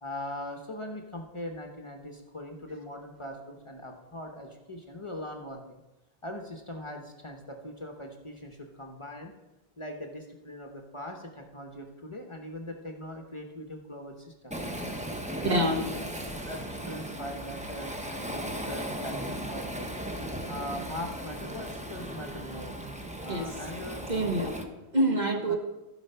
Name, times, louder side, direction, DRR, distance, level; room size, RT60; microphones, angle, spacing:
voice 1, 0.0-5.8 6.2-9.3 9.8-14.6 15.5-16.0 16.4-19.9 20.5-22.7 23.2-24.4 25.5-25.6, left 1 dB, 30° left, 3 dB, 0.9 m, -41 dB
Waves surf, 14.5-24.6, equal, 10° right, 0.8 m, -37 dB
voice 2, 15.4-15.9 23.3-23.6 24.1-25.5, right 1 dB, 45° right, 2 dB, 1.4 m, -27 dB
14.5 x 5.1 x 5.5 m, 1.0 s
omnidirectional pair, 1.0 m